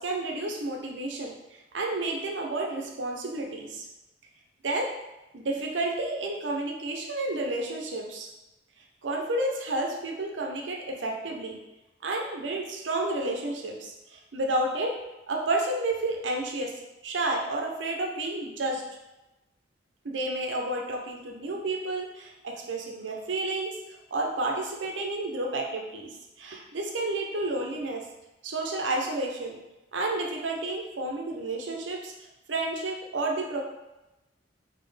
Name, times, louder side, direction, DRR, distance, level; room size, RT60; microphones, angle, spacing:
voice 1, 0.0-1.3 1.7-3.9 4.6-4.9 5.3-8.3 9.0-11.6 12.0-14.9 15.3-16.7 17.0-18.8 20.0-23.8 24.1-26.1 26.4-28.0 28.4-29.6 29.9-32.1 32.5-33.6, right 2 dB, 75° right, 0 dB, 0.7 m, -31 dB
4.2 x 2.8 x 3.2 m, 1.0 s
head